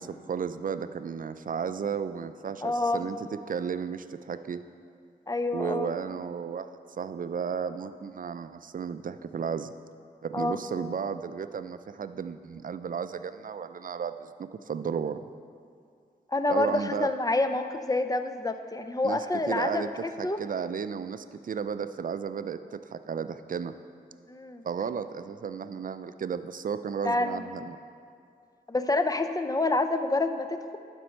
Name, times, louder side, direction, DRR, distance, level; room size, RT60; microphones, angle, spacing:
voice 1, 0.0-4.6 5.5-6.7 7.0-9.7 10.2-15.2 16.5-17.1 19.0-19.9 20.2-23.7 24.6-27.8, right 6 dB, 50° right, 12 dB, 0.4 m, -34 dB
voice 2, 2.6-3.0 5.3-5.9 10.3-10.6 16.3-20.4 24.3-24.6 27.0-27.4 28.7-30.8, left 2 dB, 20° left, 8 dB, 0.6 m, -28 dB
12.0 x 5.2 x 4.5 m, 2.3 s
cardioid pair, 55°, 18 cm